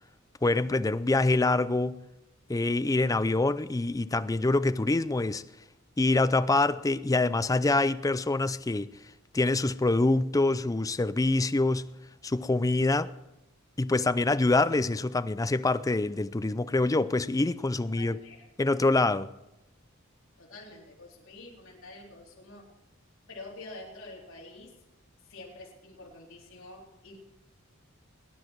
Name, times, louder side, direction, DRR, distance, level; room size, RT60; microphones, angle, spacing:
voice 1, 0.4-2.0 2.5-5.4 6.0-8.9 9.3-11.9 12.2-13.1 13.8-18.2 18.6-19.3, left 2 dB, 15° left, 0.4 m, -25 dB
voice 2, 18.0-18.8 20.4-22.7 23.3-24.7 25.3-27.2, left 2 dB, 70° left, 3.8 m, -47 dB
20.0 x 9.9 x 4.7 m
head